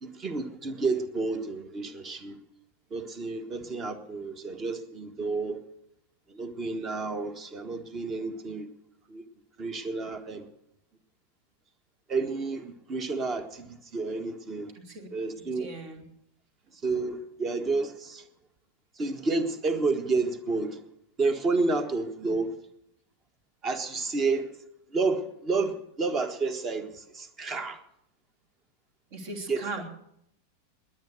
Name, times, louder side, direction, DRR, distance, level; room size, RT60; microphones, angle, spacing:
voice 1, 0.0-2.4 2.9-5.6 6.3-8.7 9.1-9.2 9.6-10.5 12.1-14.7 15.1-15.7 16.8-18.2 19.0-20.8 21.2-22.5 23.6-24.5 24.9-27.8 29.5-29.8, right 3 dB, 25° right, 1.5 m, -30 dB
voice 2, 14.7-15.1 15.4-16.0 22.2-22.4 29.1-29.8, right 3 dB, 55° right, 3.1 m, -39 dB
20.5 x 9.0 x 6.5 m
figure-of-eight pair, 90°, 0 cm